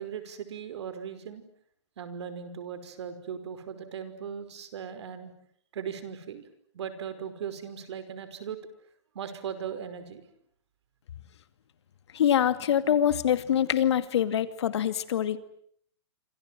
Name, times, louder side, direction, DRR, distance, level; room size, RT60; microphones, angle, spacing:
voice 1, 0.0-1.4 2.0-5.3 5.7-6.5 6.7-8.6 9.2-10.2, right 8 dB, 65° right, 12 dB, 5.4 m, -38 dB
voice 2, 12.1-15.4, left 10 dB, 65° left, 12 dB, 2.4 m, -24 dB
28.5 x 26.5 x 7.7 m, 0.64 s
hypercardioid pair, 145°, 15 cm